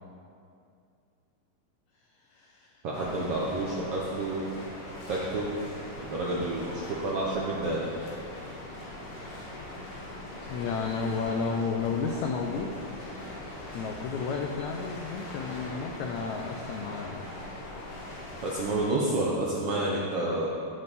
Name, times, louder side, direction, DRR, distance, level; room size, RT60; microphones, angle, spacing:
voice 1, 2.3-2.8 10.5-12.8 13.7-17.2, left 5 dB, 85° left, 2 dB, 1.6 m, -32 dB
voice 2, 2.8-4.5 5.1-5.5 6.1-7.9 18.4-20.5, right 2 dB, 75° right, -5 dB, 1.3 m, -29 dB
sound 1, 2.9-18.9, left 1 dB, 70° left, 3.0 m, -41 dB
15.5 x 5.4 x 4.1 m, 2.4 s
omnidirectional pair, 4.0 m